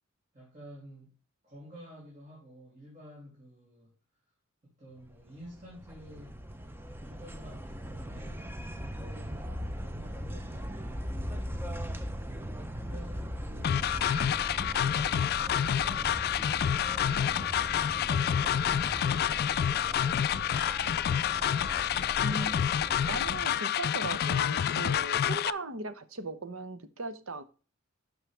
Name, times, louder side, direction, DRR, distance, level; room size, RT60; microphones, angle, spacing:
voice 1, 0.3-1.2 1.4-3.9 4.6-6.4 7.0-12.0 12.8-17.5 17.9-19.7, equal, 35° right, 3.1 m, -50 dB
sound 1, 5.1-23.5, equal, 10° right, 0.6 m, -39 dB
sound 2, 13.6-25.5, left 9 dB, 50° left, 0.3 m, -28 dB
voice 2, 22.2-22.6 23.1-27.4, right 3 dB, 70° right, 1.0 m, -38 dB
12.5 x 5.6 x 3.4 m
head